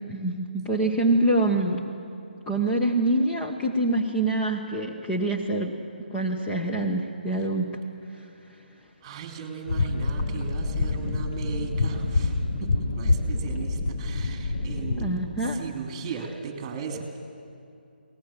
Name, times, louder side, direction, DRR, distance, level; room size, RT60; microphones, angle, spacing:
voice 1, 0.1-1.8 2.5-5.8 6.1-7.8 15.0-15.6, right 2 dB, 10° left, -1 dB, 1.1 m, -25 dB
voice 2, 9.0-15.1 15.4-17.0, right 5 dB, 25° right, 4 dB, 2.9 m, -37 dB
sound 1, 9.7-15.1, left 3 dB, 40° left, 1.9 m, -27 dB
23.0 x 19.0 x 7.4 m, 2.5 s
figure-of-eight pair, 150°, 6 cm